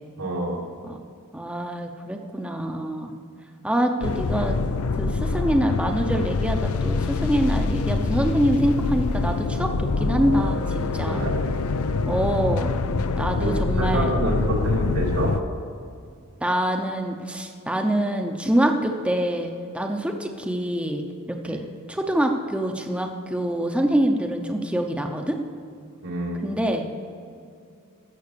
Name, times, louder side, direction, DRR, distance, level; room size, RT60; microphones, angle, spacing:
voice 1, 0.2-0.6 11.1-11.3 13.3-15.3 26.0-26.6, right 1 dB, 90° right, -4 dB, 3.2 m, -27 dB
voice 2, 1.3-3.2 3.6-4.6 5.0-11.2 12.1-12.7 13.2-14.1 16.4-21.6 21.9-25.4 26.4-26.9, right 1 dB, 5° right, 3 dB, 0.7 m, -25 dB
sound 1, 4.0-15.4, left 3 dB, 75° left, 0.5 m, -25 dB
15.0 x 6.3 x 6.8 m, 2.4 s
head